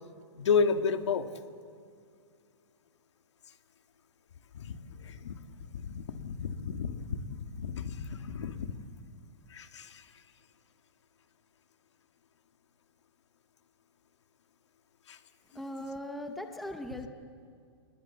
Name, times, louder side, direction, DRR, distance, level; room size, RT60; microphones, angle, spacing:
voice 1, 0.4-1.3 4.5-5.4 5.7-8.7 9.5-10.0 15.1-15.2, left 5 dB, 75° left, 7 dB, 2.0 m, -32 dB
voice 2, 15.5-17.1, left 1 dB, ahead, 5 dB, 0.8 m, -39 dB
28.0 x 20.5 x 7.4 m, 2.3 s
hypercardioid pair, 175°, 15 cm